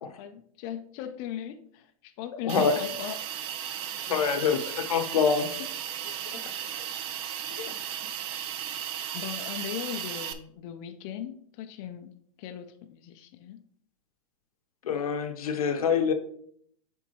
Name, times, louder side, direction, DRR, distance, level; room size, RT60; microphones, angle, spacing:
voice 1, 0.1-3.1 5.6-5.7 6.0-6.1 7.5-7.7 9.1-13.6, left 10 dB, 40° left, 6 dB, 0.5 m, -39 dB
voice 2, 2.4-2.8 4.1-5.6 14.8-16.1, left 6 dB, 85° left, 7 dB, 0.8 m, -25 dB
Hiss, 2.5-10.3, right 10 dB, 30° right, 0.4 m, -35 dB
8.8 x 3.5 x 3.0 m, 0.65 s
hypercardioid pair, 135°, 18 cm